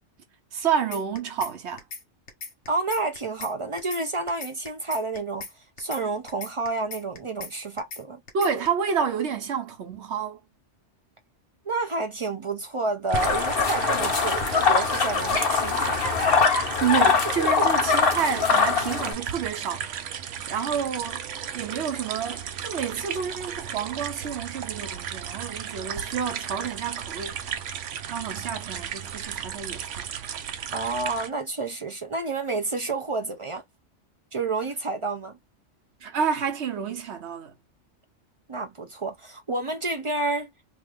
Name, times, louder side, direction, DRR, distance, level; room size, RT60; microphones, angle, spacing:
voice 1, 0.5-1.8 8.3-10.4 16.8-19.9 20.5-21.2 21.5-27.6 28.1-30.1 36.0-37.5, right 7 dB, 70° right, 1.1 m, -29 dB
sound 1, 0.9-1.5 1.8-2.0 2.3-3.5 3.8-4.0 4.3-5.5 5.8-6.0 6.3-7.5 7.8-8.0 8.3-8.7, left 4 dB, 70° left, 1.4 m, -38 dB
voice 2, 2.7-5.5 5.8-8.2 11.7-16.0 17.4-17.5 30.7-33.6 34.3-35.4 38.5-40.5, right 3 dB, 45° right, 0.4 m, -29 dB
sound 2, 13.1-19.1, left 5 dB, 55° left, 1.1 m, -22 dB
sound 3, 13.1-31.3, right 8 dB, 85° right, 1.0 m, -35 dB
3.1 x 2.4 x 3.3 m
omnidirectional pair, 1.2 m